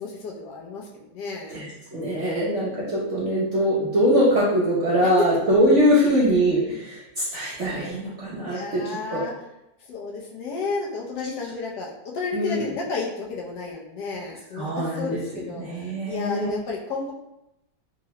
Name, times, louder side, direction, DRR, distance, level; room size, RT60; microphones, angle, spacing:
voice 1, 0.0-1.6 8.5-9.3 9.9-17.1, left 4 dB, 75° left, -2 dB, 1.2 m, -32 dB
voice 2, 1.5-9.2 12.3-12.7 14.5-15.2 15.5-16.5, equal, 60° right, -7 dB, 0.8 m, -22 dB
3.7 x 2.1 x 2.8 m, 0.89 s
omnidirectional pair, 1.9 m